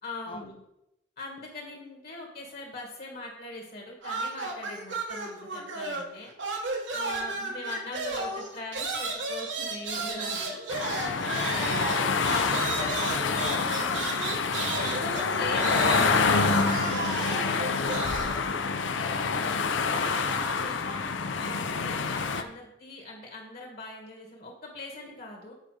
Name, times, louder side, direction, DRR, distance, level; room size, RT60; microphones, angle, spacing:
voice 1, 0.0-0.6 1.2-6.3 6.9-10.7 11.3-12.1 12.6-12.9 14.7-18.7 19.9-25.5, left 2 dB, 50° left, 0 dB, 1.8 m, -41 dB
sound 1, 4.0-6.1 6.4-18.3, right 3 dB, 75° right, 1.4 m, -33 dB
sound 2, 10.7-22.4, left 4 dB, 80° left, 0.6 m, -27 dB
voice 2, 11.3-11.7 12.5-14.7 18.2-19.4, left 2 dB, 25° left, 6 dB, 0.7 m, -45 dB
8.6 x 5.1 x 4.9 m, 0.86 s
head